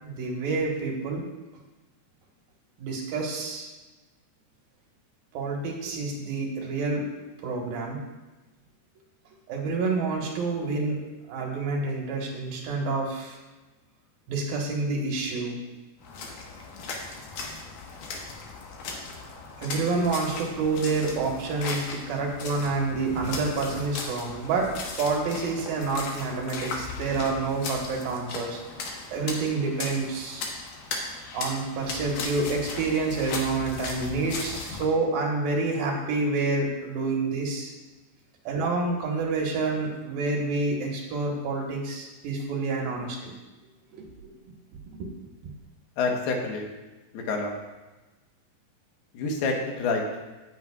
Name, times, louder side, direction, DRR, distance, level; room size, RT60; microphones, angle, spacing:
voice 1, 0.0-1.2 2.8-3.7 5.3-7.0 7.4-8.0 9.5-11.0 11.3-13.4 14.3-15.6 19.6-24.7 25.0-30.5 31.3-37.7 38.5-43.2 43.9-44.4 45.0-45.1, right 3 dB, 70° right, -1 dB, 3.1 m, -28 dB
sound 1, 16.0-34.9, left 4 dB, 65° left, 2.7 m, -37 dB
voice 2, 46.0-46.7 47.1-47.5 49.1-50.0, left 3 dB, 80° left, 1 dB, 3.2 m, -27 dB
16.5 x 9.1 x 2.4 m, 1.1 s
omnidirectional pair, 4.5 m